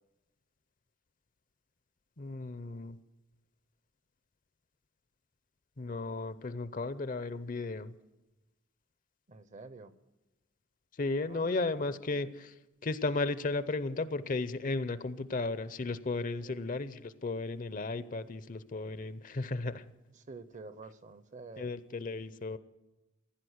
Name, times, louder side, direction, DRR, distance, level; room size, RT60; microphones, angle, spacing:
voice 1, 2.2-3.0 5.8-7.9 11.0-12.5 12.8-19.8 21.6-22.6, left 3 dB, 40° left, 14 dB, 0.6 m, -34 dB
voice 2, 9.3-9.9 11.3-11.6 11.9-12.3 16.4-16.8 20.1-21.7, right 3 dB, 40° right, 14 dB, 0.7 m, -49 dB
16.0 x 10.5 x 8.0 m, 1.0 s
head